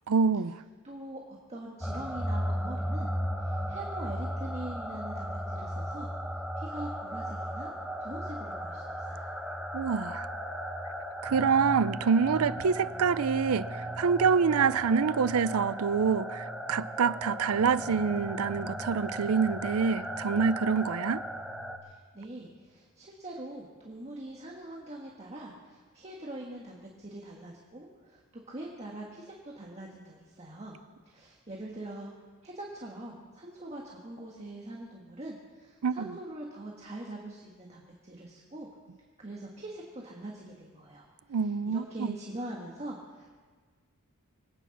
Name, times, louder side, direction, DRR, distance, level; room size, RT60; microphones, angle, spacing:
voice 1, 0.1-0.6 9.7-10.3 11.2-21.2 35.8-36.1 41.3-42.1, right 6 dB, 75° right, 0.5 m, -26 dB
voice 2, 0.8-3.1 3.4-6.1 6.6-7.7 8.0-9.3 21.8-30.8 31.0-32.1 32.4-38.7 39.2-43.4, right 1 dB, 30° right, 1.6 m, -43 dB
sound 1, 1.8-21.8, equal, ahead, 1.0 m, -36 dB
24.5 x 9.4 x 5.9 m
head